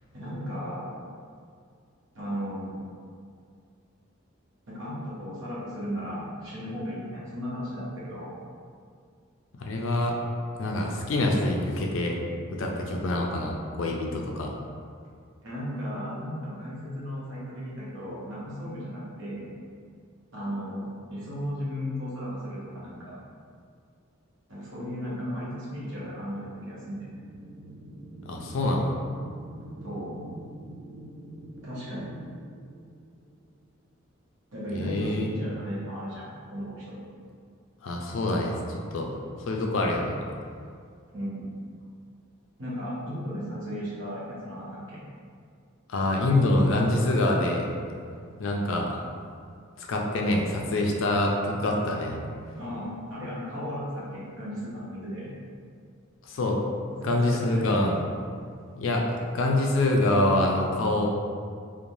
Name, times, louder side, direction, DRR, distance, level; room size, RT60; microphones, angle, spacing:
voice 1, 0.1-0.9 2.1-2.8 4.7-8.3 15.4-19.5 20.3-23.2 24.5-27.1 29.8-30.2 31.6-32.2 34.5-37.0 41.1-41.5 42.6-45.0 52.6-55.3 57.0-57.7, equal, 65° right, -8 dB, 0.9 m, -35 dB
voice 2, 9.6-10.1 10.6-12.2 12.5-14.5 28.3-28.9 34.7-35.3 37.8-39.1 39.4-40.2 45.9-47.7 48.4-49.0 49.8-52.2 56.3-56.6 57.0-58.0 58.8-61.1, left 1 dB, 65° left, 0 dB, 0.4 m, -25 dB
sound 1, 26.7-33.7, right 1 dB, 80° right, 0.4 m, -45 dB
3.1 x 2.1 x 2.6 m, 2.2 s
head